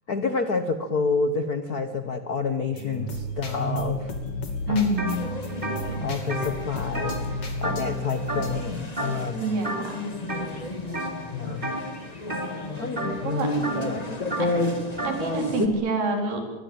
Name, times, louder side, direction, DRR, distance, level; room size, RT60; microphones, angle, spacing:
voice 1, 0.1-4.1 4.7-4.9 6.0-7.2 7.6-9.6 11.3-11.8 12.8-14.3, left 4 dB, 90° left, 9 dB, 0.8 m, -29 dB
sound 1, 2.7-8.6, left 2 dB, 45° left, 3.7 m, -32 dB
voice 2, 4.7-5.2 9.4-10.1 13.2-13.5 14.4-14.5 15.0-16.4, right 1 dB, 85° right, 3 dB, 6.0 m, -26 dB
sound 2, 5.0-5.2 5.5-8.0 8.3-8.7 9.0-9.3 9.6-10.5 10.9-11.2 11.6-15.2, right 1 dB, 15° right, 3.8 m, -32 dB
sound 3, 5.1-15.7, left 1 dB, 20° left, 1.2 m, -32 dB
24.0 x 21.5 x 8.9 m, 1.1 s
omnidirectional pair, 3.8 m